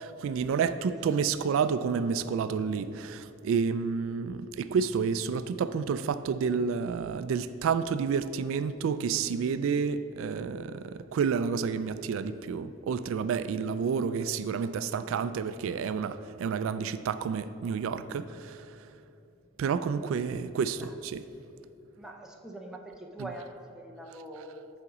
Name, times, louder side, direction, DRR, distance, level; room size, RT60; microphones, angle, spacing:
voice 1, 0.0-18.6 19.6-21.2, right 6 dB, 80° right, 13 dB, 0.3 m, -30 dB
voice 2, 22.0-24.7, right 1 dB, 5° right, 0 dB, 0.6 m, -44 dB
6.8 x 4.9 x 6.0 m, 2.9 s
head